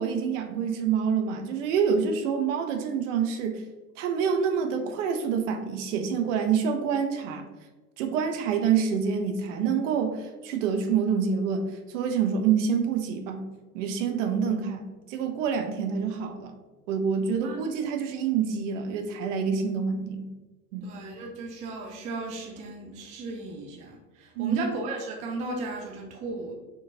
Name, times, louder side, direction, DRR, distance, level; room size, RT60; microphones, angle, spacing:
voice 1, 0.0-3.6 4.0-7.4 8.0-13.4 13.7-16.5 16.9-20.3 20.7-20.9 24.4-24.6, right 6 dB, 55° right, 6 dB, 0.6 m, -27 dB
voice 2, 20.8-26.5, right 3 dB, 15° right, 1 dB, 0.4 m, -35 dB
4.3 x 3.0 x 2.7 m, 1.2 s
figure-of-eight pair, 85°, 46 cm